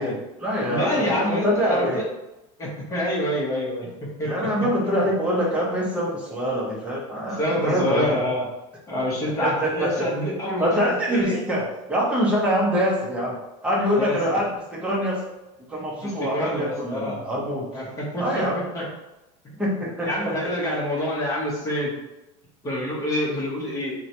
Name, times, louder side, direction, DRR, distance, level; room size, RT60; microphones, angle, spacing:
voice 1, 0.0-2.0 4.3-8.1 9.4-9.9 10.6-13.4 13.6-15.2 15.7-17.7 18.2-18.6 19.6-20.3, equal, 5° right, -4 dB, 0.7 m, -24 dB
voice 2, 0.7-2.1 2.6-4.3 4.8-5.0 7.3-8.5 8.9-11.4 13.9-14.4 15.7-17.2 17.7-18.9 19.4-21.9 22.6-23.9, equal, 20° left, -5 dB, 0.9 m, -27 dB
3.7 x 2.2 x 2.9 m, 0.97 s
supercardioid pair, 160°, 17 cm